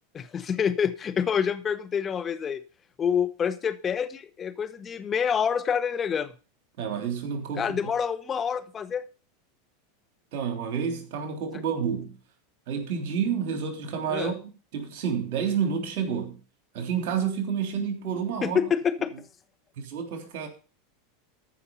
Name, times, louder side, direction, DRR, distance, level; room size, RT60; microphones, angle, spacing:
voice 1, 0.1-2.6 3.0-6.3 7.6-9.0 14.1-14.3 18.4-19.1, left 7 dB, 30° left, 1.2 m, -27 dB
voice 2, 6.8-7.8 10.3-12.1 12.7-14.3 14.7-16.4 16.7-18.6 19.1-19.2 19.8-20.5, right 7 dB, 60° right, 3.3 m, -29 dB
14.0 x 5.8 x 5.5 m
hypercardioid pair, 90°, 0 cm